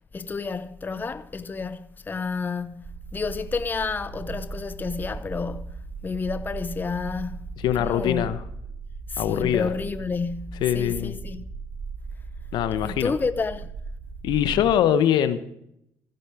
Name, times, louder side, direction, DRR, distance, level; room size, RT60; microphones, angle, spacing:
voice 1, 0.1-7.4 7.8-8.3 9.1-11.4 12.8-13.7, left 4 dB, 25° left, 0.7 m, -30 dB
sound 1, 2.8-14.8, right 4 dB, 65° right, 3.2 m, -38 dB
voice 2, 7.6-8.4 9.2-9.7 10.6-11.2 12.5-13.1 14.2-15.4, left 10 dB, 70° left, 1.1 m, -23 dB
15.5 x 10.5 x 5.0 m
supercardioid pair, 80°, 8 cm